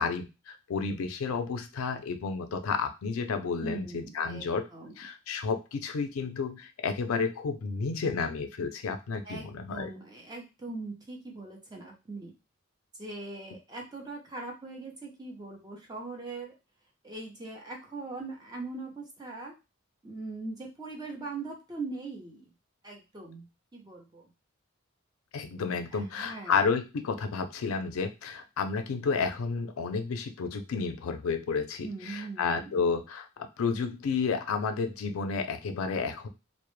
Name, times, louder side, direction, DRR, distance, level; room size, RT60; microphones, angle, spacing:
voice 1, 0.0-4.7 5.0-9.9 25.3-33.3 33.6-36.3, left 5 dB, 90° left, 7 dB, 0.4 m, -31 dB
voice 2, 3.6-4.9 9.2-12.3 13.0-16.5 17.0-19.5 20.0-22.4 22.8-23.5 23.7-24.3 25.9-26.5 31.8-32.9, right 3 dB, 20° right, 0 dB, 0.5 m, -41 dB
2.1 x 2.0 x 3.0 m, 0.27 s
head